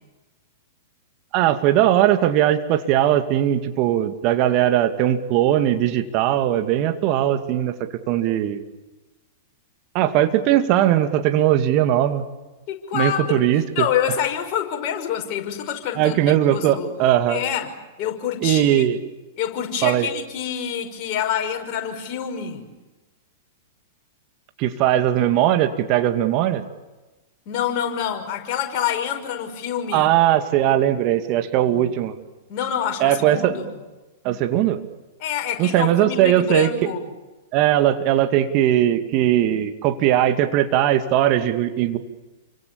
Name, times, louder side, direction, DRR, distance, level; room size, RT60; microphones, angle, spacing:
voice 1, 1.3-8.6 9.9-12.2 12.9-13.6 16.0-17.4 18.4-19.0 19.8-20.1 24.6-26.6 29.9-32.1 33.0-33.6 34.2-34.8 35.6-36.7 37.5-42.0, right 12 dB, 40° right, 8 dB, 2.4 m, -19 dB
voice 2, 12.7-16.2 16.5-16.9 17.3-18.8 19.4-22.7 27.5-30.1 32.5-33.8 35.2-37.0, left 9 dB, 40° left, 3 dB, 5.8 m, -27 dB
29.5 x 25.0 x 7.2 m, 1.1 s
figure-of-eight pair, 100°, 0 cm